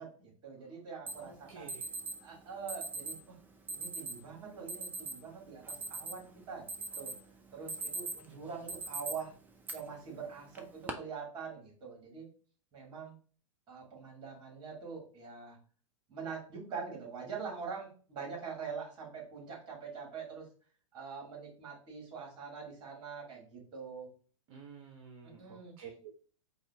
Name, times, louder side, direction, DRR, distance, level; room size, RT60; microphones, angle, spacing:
voice 1, 0.0-1.7 2.2-3.4 3.7-7.1 7.5-9.3 9.7-12.3 12.7-13.2 13.7-15.6 16.1-20.5 20.9-24.1 25.2-25.7, right 5 dB, 25° right, -2 dB, 2.4 m, -44 dB
Alarm, 1.1-1.2 1.7-2.2 2.7-3.2 3.7-4.2 4.7-5.1 5.5-6.3 6.7-7.2 7.5-8.3 8.7-9.1 9.7-9.8 10.6-10.9, right 3 dB, 10° right, 0.5 m, -39 dB
voice 2, 1.2-1.9 24.5-26.1, right 6 dB, 45° right, 2 dB, 0.8 m, -51 dB
4.1 x 2.8 x 4.7 m, 0.41 s
figure-of-eight pair, 100°, 17 cm